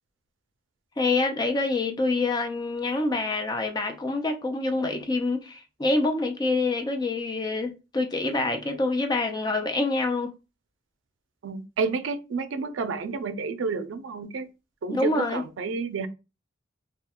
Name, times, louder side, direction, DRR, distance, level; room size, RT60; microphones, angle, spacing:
voice 1, 1.0-10.3 14.9-15.4, left 2 dB, 20° left, 0.4 m, -26 dB
voice 2, 11.4-14.5 14.8-16.1, right 4 dB, 70° right, 0.4 m, -30 dB
2.3 x 2.2 x 2.8 m
head